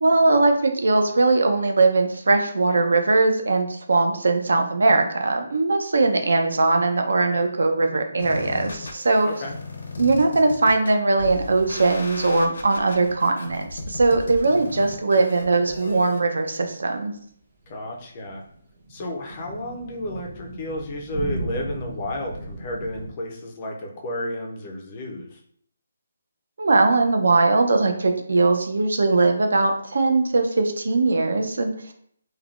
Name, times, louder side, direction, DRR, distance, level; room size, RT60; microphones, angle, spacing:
voice 1, 0.0-9.3 10.0-17.1 26.6-31.9, right 3 dB, 75° right, 5 dB, 0.5 m, -20 dB
sound 1, 8.2-16.2, left 3 dB, 65° left, 0.6 m, -36 dB
voice 2, 9.2-9.6 17.7-18.4 18.9-25.4, left 1 dB, 20° left, 0 dB, 0.4 m, -32 dB
sound 2, 17.6-23.1, right 2 dB, 25° right, 0.7 m, -36 dB
3.2 x 2.2 x 2.4 m, 0.63 s
hypercardioid pair, 180°, 0 cm